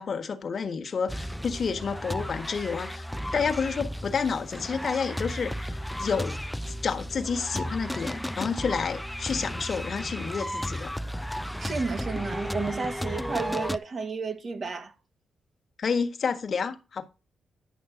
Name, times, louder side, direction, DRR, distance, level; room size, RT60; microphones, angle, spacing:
voice 1, 0.0-3.0 3.3-6.4 6.7-10.9 15.8-17.0, left 5 dB, 50° left, 1.4 m, -30 dB
sound 1, 1.1-13.8, equal, 5° left, 0.5 m, -34 dB
voice 2, 11.6-14.9, right 4 dB, 45° right, 1.8 m, -32 dB
10.5 x 6.2 x 3.8 m
cardioid pair, 85°, 0 cm